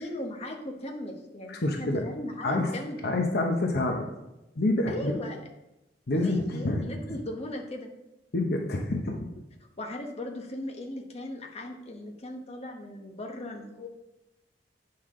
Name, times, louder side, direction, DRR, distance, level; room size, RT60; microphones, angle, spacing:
voice 1, 0.0-3.1 4.9-5.4 6.1-7.9 9.8-13.9, left 1 dB, 35° left, 2 dB, 1.1 m, -38 dB
voice 2, 1.5-2.1 2.4-2.8 3.0-4.1 4.6-5.2 6.1-6.8 8.3-9.3, left 2 dB, 60° left, 2 dB, 0.9 m, -27 dB
9.3 x 5.7 x 3.7 m, 0.94 s
head